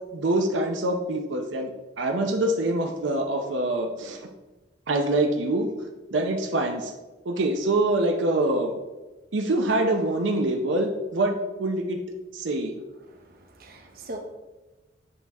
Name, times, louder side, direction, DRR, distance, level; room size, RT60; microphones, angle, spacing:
voice 1, 0.1-1.7 2.0-4.3 4.9-5.7 6.1-6.9 7.2-8.7 9.3-12.0 12.3-12.7, right 2 dB, 80° right, 3 dB, 0.7 m, -25 dB
voice 2, 13.1-14.2, right 1 dB, 50° right, 3 dB, 0.8 m, -41 dB
8.2 x 4.2 x 3.5 m, 1.1 s
head